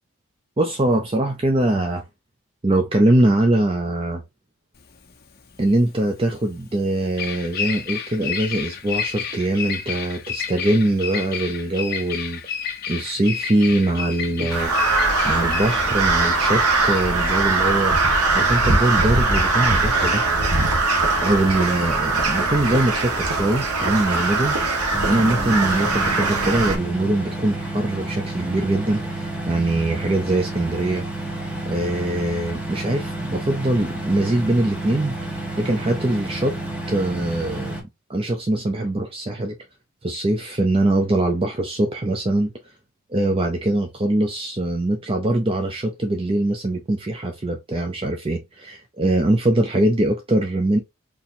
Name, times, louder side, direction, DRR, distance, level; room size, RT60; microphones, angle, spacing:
voice 1, 0.6-2.0 2.6-4.2 5.6-12.4 12.9-14.7 15.2-18.0 18.3-20.2 21.2-24.6 25.0-31.0 31.6-35.2 35.6-36.6 36.9-37.8 38.1-39.6 40.0-42.5 43.1-50.8, right 1 dB, 25° right, 0.4 m, -22 dB
Bird vocalization bird call bird song, 4.8-18.0, left 7 dB, 45° left, 0.8 m, -31 dB
Crow, 14.5-26.8, right 3 dB, 85° right, 1.2 m, -21 dB
sound 1, 24.9-37.8, right 2 dB, 5° right, 0.9 m, -30 dB
4.3 x 2.9 x 2.6 m
head